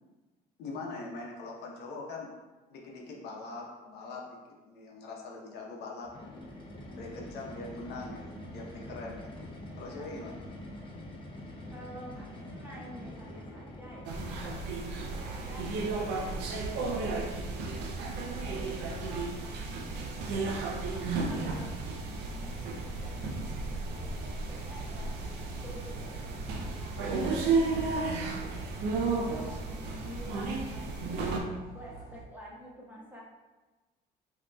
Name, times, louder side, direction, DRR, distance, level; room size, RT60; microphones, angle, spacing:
voice 1, 0.6-2.3 2.7-4.4 4.7-6.1 7.0-9.3 9.8-10.4, left 3 dB, 75° left, -1 dB, 0.8 m, -42 dB
sound 1, 6.0-14.8, left 1 dB, 30° left, 0.7 m, -45 dB
voice 2, 9.8-10.4 11.7-14.4 15.1-17.7 18.2-21.8 22.1-25.2 25.6-27.1 27.6-28.6 29.0-31.5 31.7-33.2, equal, 10° right, -5 dB, 1.1 m, -49 dB
sound 2, 14.0-31.4, right 3 dB, 85° right, 0.6 m, -33 dB
sound 3, 14.7-32.2, right 5 dB, 55° right, 1.0 m, -46 dB
5.0 x 2.9 x 2.3 m, 1.2 s
cardioid pair, 110°, 17 cm